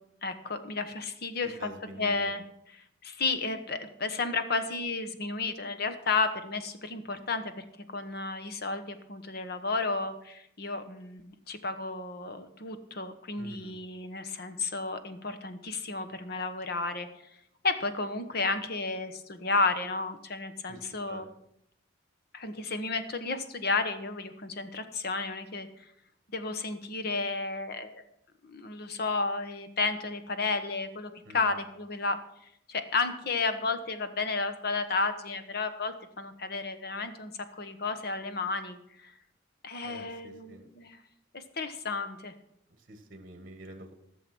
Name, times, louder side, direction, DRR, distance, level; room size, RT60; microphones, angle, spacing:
voice 1, 0.2-1.7 2.0-2.4 3.0-7.6 7.9-17.1 17.6-21.3 22.3-25.8 26.3-28.0 28.4-32.2 32.7-39.1 39.6-41.0 41.3-42.3, left 3 dB, 55° left, 9 dB, 1.1 m, -32 dB
voice 2, 1.4-2.1 13.4-13.7 20.7-20.8 21.1-21.2 31.2-31.6 39.8-40.7 42.8-43.9, right 1 dB, 45° right, 7 dB, 1.4 m, -47 dB
14.5 x 6.9 x 6.0 m, 0.77 s
head